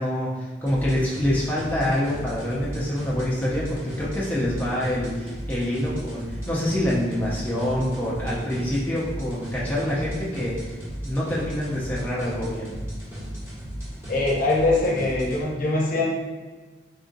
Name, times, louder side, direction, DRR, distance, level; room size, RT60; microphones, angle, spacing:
voice 1, 0.0-10.8 11.0-12.8, left 1 dB, 10° left, -7 dB, 0.5 m, -26 dB
sound 1, 0.7-15.4, equal, 15° right, 1.1 m, -36 dB
voice 2, 14.1-16.0, left 2 dB, 50° left, -4 dB, 0.7 m, -22 dB
3.7 x 2.6 x 2.5 m, 1.3 s
head